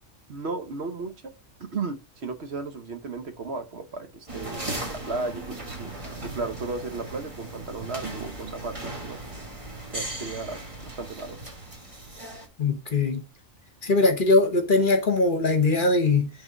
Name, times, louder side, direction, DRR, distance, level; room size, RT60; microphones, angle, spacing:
voice 1, 0.3-1.3 1.6-5.9 6.2-9.2 9.9-11.4, right 3 dB, 55° right, 1.2 m, -35 dB
sound 1, 4.3-12.5, right 2 dB, 25° right, 1.8 m, -37 dB
voice 2, 12.6-13.2 13.8-16.3, left 3 dB, 40° left, 1.1 m, -21 dB
5.7 x 3.9 x 6.0 m
omnidirectional pair, 1.4 m